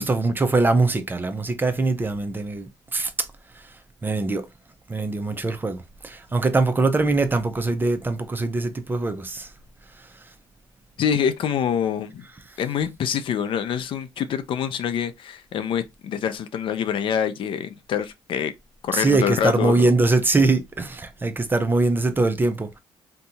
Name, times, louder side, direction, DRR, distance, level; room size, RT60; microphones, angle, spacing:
voice 1, 0.0-3.3 3.5-4.5 4.9-9.5 10.0-10.3 18.9-22.8, right 3 dB, 20° right, 0.5 m, -23 dB
voice 2, 11.0-12.2 12.6-18.5 18.8-19.9, left 8 dB, 60° left, 0.5 m, -25 dB
2.7 x 2.2 x 3.9 m
cardioid pair, 95°, 10 cm